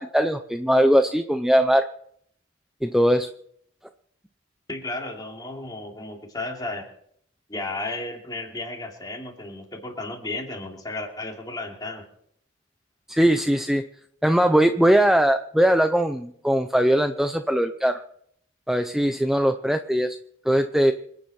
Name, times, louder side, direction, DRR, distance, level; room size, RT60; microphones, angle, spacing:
voice 1, 0.0-1.9 2.8-3.3 13.1-13.9 14.2-18.0 18.7-20.2 20.5-20.9, equal, ahead, 7 dB, 0.5 m, -20 dB
voice 2, 4.7-6.9 7.5-12.0, left 2 dB, 20° left, 1 dB, 2.8 m, -33 dB
27.0 x 9.5 x 4.4 m, 0.67 s
head